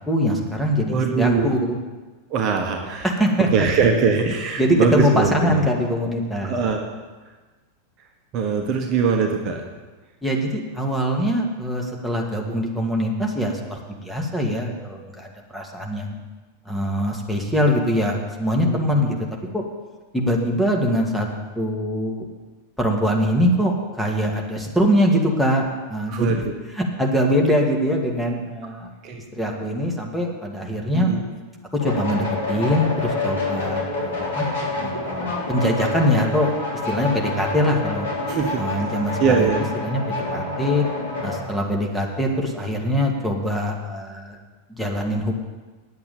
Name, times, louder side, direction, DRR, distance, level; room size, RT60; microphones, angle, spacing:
voice 1, 0.0-1.8 3.0-3.5 4.6-6.5 10.2-15.3 15.5-16.2 16.7-19.2 19.5-19.6 20.1-21.3 21.6-22.3 22.8-25.6 25.9-26.3 26.8-28.9 29.3-31.1 31.7-34.5 34.8-36.5 36.9-38.1 38.6-39.5 39.8-40.8 41.2-44.4 44.7-45.3, equal, 5° left, -1 dB, 2.1 m, -23 dB
voice 2, 0.9-1.6 2.3-3.1 3.4-5.6 6.4-6.9 8.3-9.7 18.5-18.8 26.1-26.6 29.0-29.2 30.9-31.2 38.3-38.7 39.2-39.7, right 5 dB, 35° right, 3 dB, 1.4 m, -22 dB
sound 1, 31.8-41.4, left 2 dB, 60° left, 3.7 m, -27 dB
9.5 x 8.4 x 8.6 m, 1.3 s
figure-of-eight pair, 90°, 0 cm